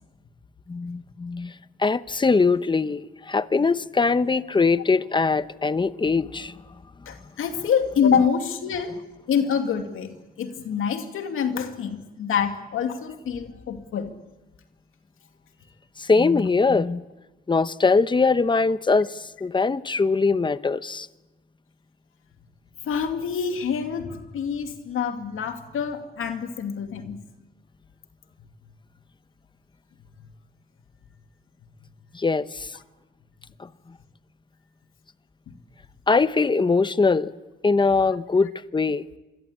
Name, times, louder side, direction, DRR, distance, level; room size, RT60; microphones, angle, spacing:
voice 1, 0.7-1.5 1.8-6.6 16.0-17.0 17.5-21.1 32.1-32.7 33.6-33.7 36.1-37.3 37.6-39.0, left 4 dB, 20° left, 14 dB, 0.9 m, -22 dB
voice 2, 7.1-9.0 9.3-10.1 10.4-14.1 22.8-27.2 35.5-35.6, left 7 dB, 85° left, 6 dB, 2.5 m, -26 dB
27.0 x 22.0 x 8.6 m, 1.1 s
cardioid pair, 105°, 21 cm